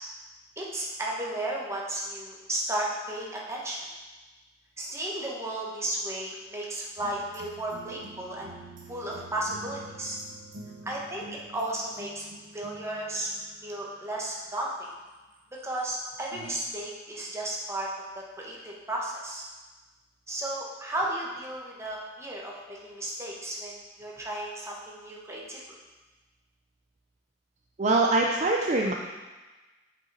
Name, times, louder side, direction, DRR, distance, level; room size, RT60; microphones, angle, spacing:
voice 1, 0.6-3.8 4.8-8.5 8.9-10.2 10.8-12.3 12.5-13.3 13.6-14.7 15.6-19.4 20.3-25.8, right 1 dB, 15° right, -3 dB, 1.2 m, -34 dB
sound 1, 7.0-14.7 15.4-16.5, right 2 dB, 80° right, 1.1 m, -47 dB
voice 2, 27.8-28.9, right 2 dB, 40° right, 0 dB, 0.5 m, -23 dB
8.0 x 5.2 x 4.1 m, 1.2 s
head